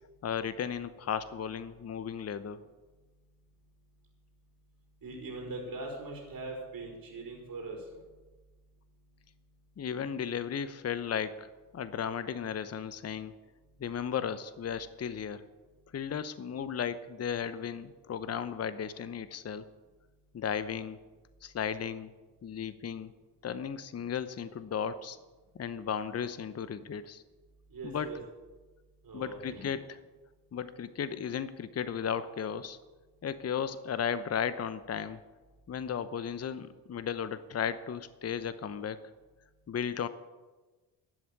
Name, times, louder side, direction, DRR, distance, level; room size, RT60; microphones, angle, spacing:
voice 1, 0.2-2.6 9.8-13.3 13.8-15.4 15.9-19.7 20.3-21.0 21.4-22.1 22.4-23.1 23.4-25.2 25.5-27.2 27.8-28.1 29.1-30.0 30.5-32.8 33.2-35.2 35.7-39.1 39.7-40.1, left 7 dB, 30° left, 14 dB, 0.9 m, -35 dB
voice 2, 5.0-7.8 27.7-28.2 29.0-29.7, right 2 dB, 45° right, -1 dB, 4.5 m, -41 dB
13.0 x 7.8 x 8.6 m, 1.2 s
hypercardioid pair, 50°, 49 cm